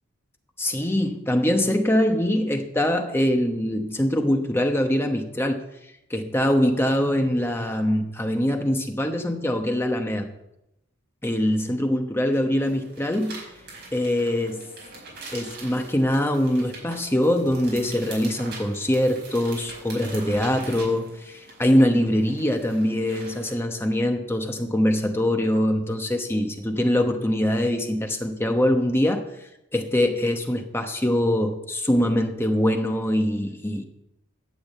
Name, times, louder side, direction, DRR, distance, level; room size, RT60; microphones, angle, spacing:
voice 1, 0.6-5.6 6.1-10.3 11.2-13.4 13.9-14.6 15.3-29.2 29.7-33.8, left 1 dB, 10° left, 4 dB, 1.0 m, -23 dB
sound 1, 12.6-23.6, right 3 dB, 50° right, 5.3 m, -43 dB
12.0 x 6.3 x 8.4 m, 0.86 s
head